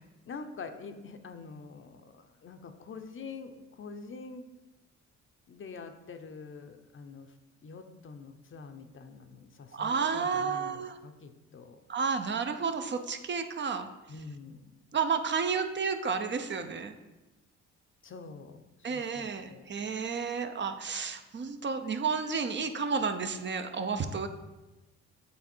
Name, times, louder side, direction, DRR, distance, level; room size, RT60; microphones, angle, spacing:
voice 1, 0.2-4.4 5.5-7.3 7.6-11.8 14.1-14.8 18.0-19.7, left 4 dB, 45° left, 7 dB, 0.7 m, -46 dB
voice 2, 9.7-11.0 11.9-13.9 14.9-16.9 18.8-24.3, right 5 dB, 40° right, 7 dB, 0.6 m, -31 dB
8.5 x 3.6 x 4.4 m, 1.1 s
cardioid pair, 90°, 30 cm